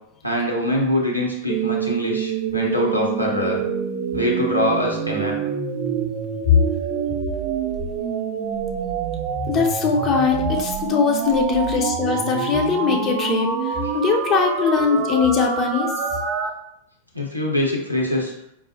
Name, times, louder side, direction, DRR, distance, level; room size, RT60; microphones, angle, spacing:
voice 1, 0.2-3.6 4.1-5.4 13.8-13.9 17.1-18.3, left 1 dB, 90° right, -1 dB, 0.7 m, -23 dB
sound 1, 1.5-16.5, right 7 dB, 40° right, 0.4 m, -26 dB
voice 2, 9.5-15.9, left 6 dB, 30° left, 1 dB, 0.6 m, -21 dB
5.1 x 2.0 x 2.7 m, 0.76 s
figure-of-eight pair, 90°, 0 cm